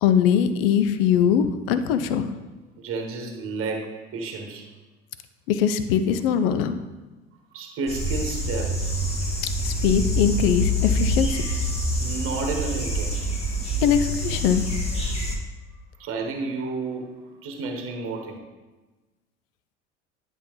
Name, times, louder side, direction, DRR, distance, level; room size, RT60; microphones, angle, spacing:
voice 1, 0.0-2.3 5.5-6.8 9.6-11.4 13.8-14.6, left 8 dB, 60° left, 11 dB, 0.6 m, -21 dB
voice 2, 2.8-4.7 7.5-9.2 11.4-13.2 16.0-18.4, right 3 dB, 40° right, 3 dB, 1.3 m, -32 dB
sound 1, 7.9-15.4, equal, 20° left, 1.6 m, -26 dB
10.5 x 5.4 x 3.1 m, 1.2 s
figure-of-eight pair, 60°, 34 cm